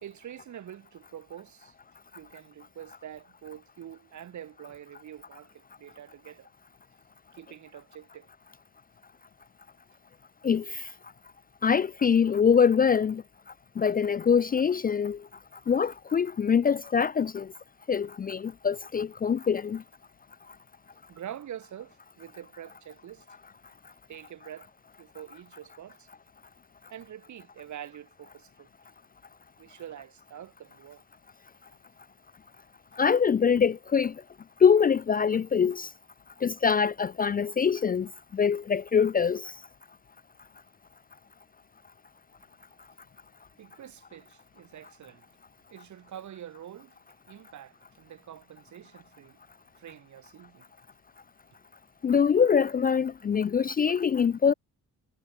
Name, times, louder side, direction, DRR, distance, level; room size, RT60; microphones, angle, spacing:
voice 1, 0.0-1.7 2.1-6.5 7.3-8.3 21.1-23.3 24.1-24.7 25.0-26.1 26.9-28.7 29.6-31.0 43.6-45.3 45.7-47.0 47.3-49.4 49.8-50.7, right 10 dB, 60° right, 4.0 m, -45 dB
voice 2, 10.4-10.9 11.6-13.2 13.8-15.2 15.7-17.5 17.9-19.8 33.0-34.1 34.6-35.9 36.4-39.5 52.0-54.5, left 6 dB, 25° left, 0.4 m, -24 dB
cardioid pair, 150°, 33 cm